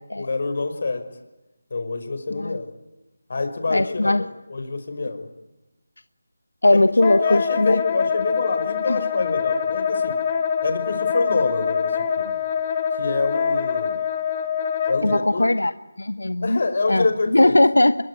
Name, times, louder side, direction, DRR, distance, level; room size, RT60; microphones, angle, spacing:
voice 1, 0.1-1.1 1.7-2.7 3.3-5.3 6.7-6.8 7.2-10.2 10.6-12.4 13.0-14.0 14.9-15.5 16.4-17.6, left 3 dB, 50° left, 8 dB, 5.7 m, -26 dB
voice 2, 3.7-4.3 6.6-7.8 8.9-9.0 15.0-15.7 16.0-16.6 16.9-18.0, left 2 dB, 90° left, 13 dB, 1.1 m, -19 dB
Wind instrument woodwind instrument, 7.0-15.2, left 7 dB, 25° left, 2.1 m, -24 dB
25.5 x 23.0 x 10.0 m, 0.99 s
figure-of-eight pair, 165°, 0 cm